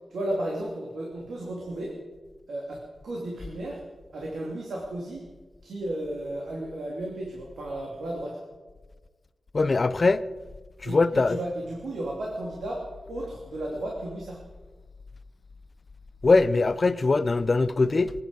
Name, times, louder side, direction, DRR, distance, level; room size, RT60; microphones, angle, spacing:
voice 1, 0.1-2.0 2.5-3.8 4.1-5.3 5.6-8.4 10.8-14.4, right 1 dB, 85° right, 3.1 m, -34 dB
voice 2, 9.5-10.2 10.9-11.4 16.2-18.1, left 3 dB, 40° left, 0.7 m, -21 dB
26.5 x 9.7 x 5.5 m
wide cardioid pair, 115°, 0 cm